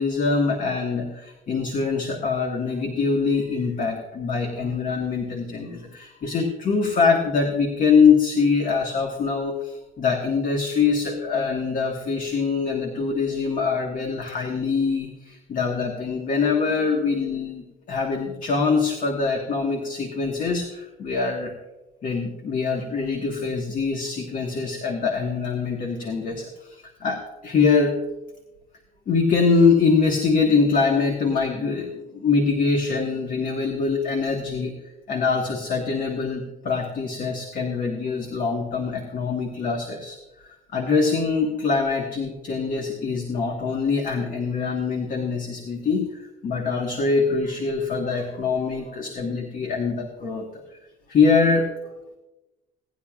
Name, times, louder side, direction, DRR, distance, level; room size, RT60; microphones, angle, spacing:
voice 1, 0.0-21.5 22.0-28.0 29.1-34.8 35.1-50.6 51.1-51.7, left 4 dB, 50° left, 2 dB, 1.5 m, -23 dB
17.5 x 10.5 x 2.4 m, 1.0 s
cardioid pair, 110°, 17 cm